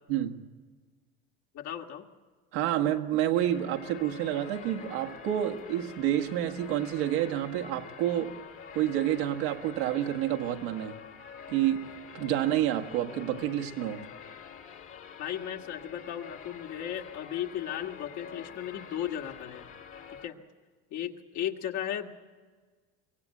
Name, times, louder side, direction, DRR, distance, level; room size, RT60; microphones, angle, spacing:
voice 1, 0.1-0.4 2.5-8.4 8.7-10.9 11.5-14.1, right 12 dB, 85° right, 1.8 m, -29 dB
voice 2, 1.5-2.0 15.2-19.7 20.2-20.4 20.9-22.1, left 10 dB, 65° left, 2.2 m, -35 dB
sound 1, 3.3-20.3, left 7 dB, 45° left, 1.9 m, -47 dB
24.0 x 17.0 x 9.0 m
supercardioid pair, 90°, 31 cm